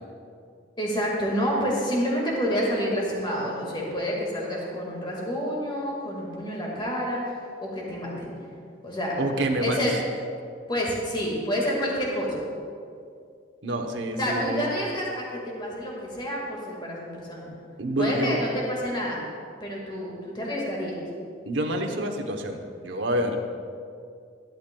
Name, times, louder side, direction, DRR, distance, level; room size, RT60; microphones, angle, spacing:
voice 1, 0.8-8.3 8.8-9.2 9.6-9.9 10.7-12.4 14.2-17.5 18.0-19.2 19.6-21.0, equal, 25° left, -3 dB, 1.8 m, -28 dB
voice 2, 9.2-10.0 13.6-14.7 17.8-18.4 21.5-23.4, right 1 dB, 80° right, 3 dB, 0.8 m, -27 dB
11.5 x 11.5 x 2.2 m, 2.3 s
head